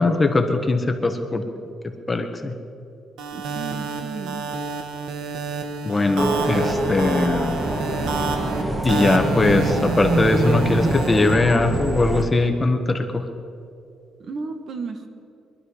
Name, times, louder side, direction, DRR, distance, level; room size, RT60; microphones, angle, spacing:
voice 1, 0.0-1.4 2.1-2.5 5.8-7.6 8.8-13.2, left 2 dB, 20° left, 5 dB, 1.2 m, -20 dB
sound 1, 3.2-11.3, right 5 dB, 90° right, 1.4 m, -29 dB
voice 2, 3.3-4.5 14.2-15.1, right 4 dB, 50° right, 6 dB, 1.5 m, -33 dB
sound 2, 6.2-12.2, right 1 dB, 20° right, 1.7 m, -25 dB
23.5 x 11.5 x 5.0 m, 2.6 s
cardioid pair, 125°, 0 cm